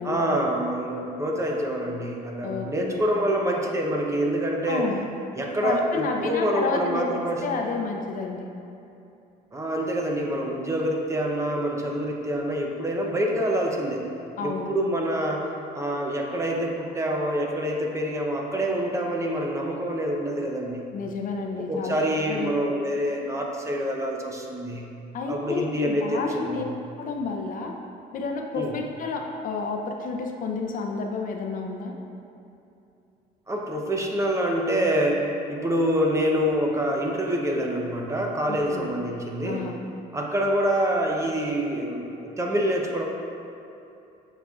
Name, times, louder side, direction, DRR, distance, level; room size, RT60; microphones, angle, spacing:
voice 1, 0.0-4.9 5.4-7.4 9.5-14.1 14.4-20.8 21.7-24.9 25.3-26.6 28.5-28.8 33.5-39.6 40.1-43.1, equal, 15° right, 0 dB, 0.7 m, -26 dB
voice 2, 2.4-3.1 4.7-5.0 5.6-8.5 14.4-14.7 20.9-22.0 22.3-22.5 25.1-26.6 27.0-27.8 28.1-31.9 38.4-38.9 39.4-39.8, left 4 dB, 55° left, 3 dB, 0.6 m, -30 dB
7.5 x 5.2 x 2.4 m, 2.7 s
cardioid pair, 110°, 17 cm